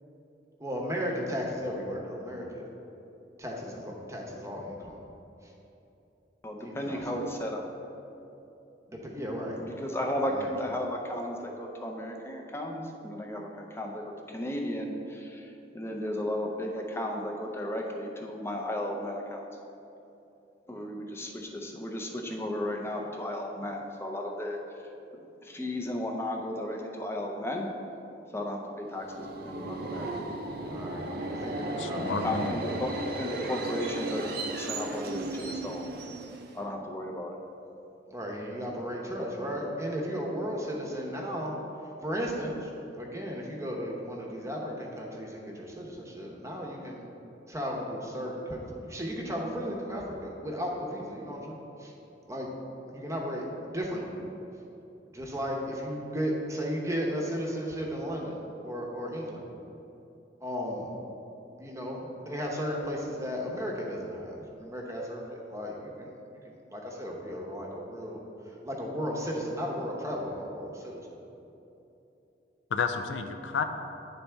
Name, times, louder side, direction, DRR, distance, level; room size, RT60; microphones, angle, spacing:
voice 1, 0.6-2.7 3.4-5.0 6.6-7.0 8.9-9.6 10.3-10.5 30.7-32.0 38.1-41.6 42.0-47.1 47.5-51.9 52.3-52.5 52.9-53.4 53.7-54.1 55.1-59.4 60.4-60.9 61.6-66.1 66.4-68.2 68.6-71.1, equal, 15° right, -1 dB, 0.8 m, -35 dB
voice 2, 6.4-7.7 9.6-19.4 20.7-24.6 25.4-27.7 28.3-30.1 31.9-35.9 36.5-37.4, left 1 dB, 15° left, 1 dB, 0.6 m, -34 dB
Subway metro underground, 28.9-36.7, right 2 dB, 55° right, 0.5 m, -35 dB
voice 3, 31.8-32.6 72.7-73.6, left 5 dB, 90° left, 7 dB, 0.4 m, -31 dB
9.9 x 4.1 x 3.4 m, 2.9 s
head